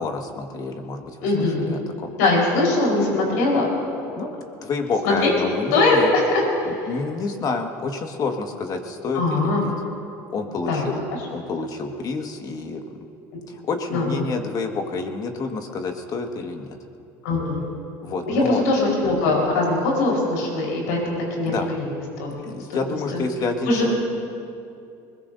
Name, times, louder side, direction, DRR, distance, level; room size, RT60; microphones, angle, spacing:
voice 1, 0.0-2.1 4.2-4.3 4.6-6.1 6.7-9.7 10.3-11.0 11.3-13.0 13.5-16.7 18.0-18.6 21.5-21.7 22.4-23.9, left 4 dB, 45° left, 4 dB, 1.8 m, -28 dB
voice 2, 1.2-1.8 2.2-3.7 5.0-5.3 5.7-6.9 9.1-9.7 10.7-10.8 13.9-14.2 17.2-17.7 18.3-21.9 22.2-22.3 22.7-22.8 23.1-23.2 23.6-24.0, left 2 dB, 85° left, -2 dB, 4.7 m, -21 dB
21.5 x 21.0 x 2.8 m, 2.6 s
supercardioid pair, 95°, 9 cm